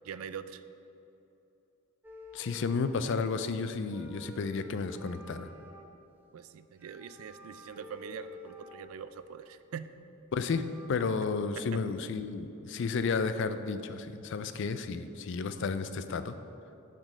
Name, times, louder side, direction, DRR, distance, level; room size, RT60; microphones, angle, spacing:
voice 1, 0.0-0.6 6.3-9.9 11.2-11.3 11.6-11.8, right 7 dB, 70° right, 12 dB, 0.4 m, -43 dB
sound 1, 2.0-3.3 3.8-5.9 6.8-9.2 9.9-10.0 10.2-10.9, equal, 10° right, 0.6 m, -50 dB
voice 2, 2.3-5.5 10.3-16.4, left 4 dB, 55° left, 11 dB, 0.4 m, -32 dB
7.2 x 5.1 x 5.3 m, 2.9 s
head